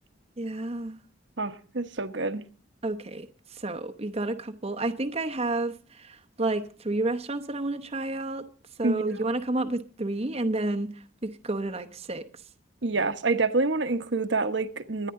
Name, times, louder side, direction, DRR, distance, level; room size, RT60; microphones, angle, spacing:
voice 1, 0.4-1.0 2.8-3.3 3.5-8.4 8.8-10.9 11.2-12.2, right 2 dB, 35° right, 0.9 m, -30 dB
voice 2, 1.4-2.4 8.8-9.0 12.8-15.1, right 3 dB, 70° right, 1.2 m, -27 dB
24.5 x 9.9 x 3.8 m
head